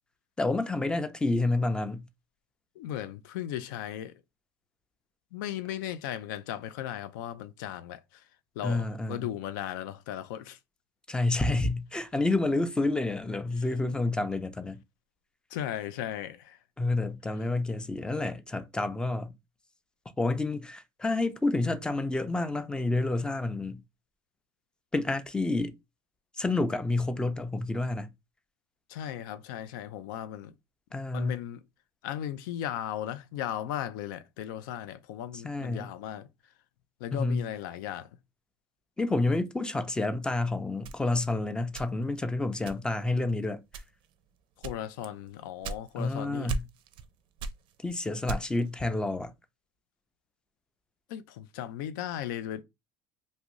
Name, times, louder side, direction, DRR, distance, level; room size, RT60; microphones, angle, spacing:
voice 1, 0.4-2.1 8.6-9.3 11.1-14.8 16.8-19.3 20.2-23.8 24.9-25.8 26.4-28.1 30.9-31.4 35.3-35.9 37.1-37.5 39.0-43.6 46.0-46.7 47.8-49.3, left 2 dB, 10° left, 0.4 m, -29 dB
voice 2, 2.8-4.1 5.3-8.0 8.6-10.6 15.5-16.6 28.9-30.5 31.1-31.6 32.0-36.3 37.0-38.1 44.6-46.5 51.1-52.6, left 11 dB, 90° left, 0.4 m, -36 dB
sound 1, 40.8-42.2 42.6-43.1 43.7-44.1 44.6-46.1 46.5-47.1 47.4-48.7, right 4 dB, 55° right, 0.4 m, -37 dB
2.6 x 2.5 x 3.0 m
supercardioid pair, 110°, 10 cm